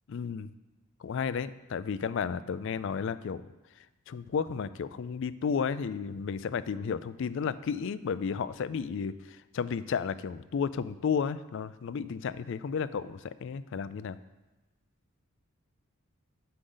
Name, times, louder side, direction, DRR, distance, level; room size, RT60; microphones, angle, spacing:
voice 1, 0.1-0.5 1.0-3.4 3.8-14.2, left 6 dB, 60° left, 15 dB, 0.4 m, -33 dB
9.9 x 6.5 x 3.9 m, 1.1 s
head